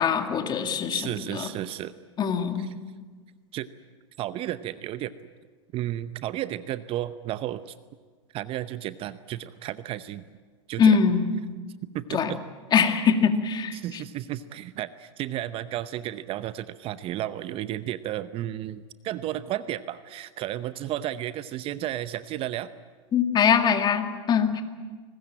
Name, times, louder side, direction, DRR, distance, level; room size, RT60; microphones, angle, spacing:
voice 1, 0.0-1.5 2.2-2.8 10.8-11.4 12.1-12.3 12.7-14.0 23.1-24.6, left 6 dB, 30° left, 7 dB, 2.2 m, -23 dB
voice 2, 0.9-2.0 3.5-3.7 4.2-5.1 5.7-7.7 8.3-10.2 10.7-11.0 11.9-12.4 13.7-22.7, right 13 dB, 35° right, 14 dB, 0.8 m, -33 dB
23.5 x 20.0 x 8.9 m, 1.5 s
hypercardioid pair, 105°, 15 cm